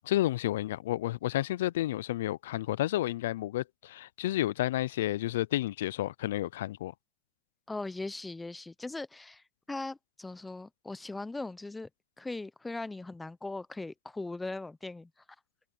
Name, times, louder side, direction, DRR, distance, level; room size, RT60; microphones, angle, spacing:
voice 1, 0.0-6.9, left 14 dB, 75° left, 0.5 m, -31 dB
voice 2, 7.7-11.9 12.2-15.1, left 2 dB, 10° left, 0.9 m, -39 dB
hypercardioid pair, 105°, 0 cm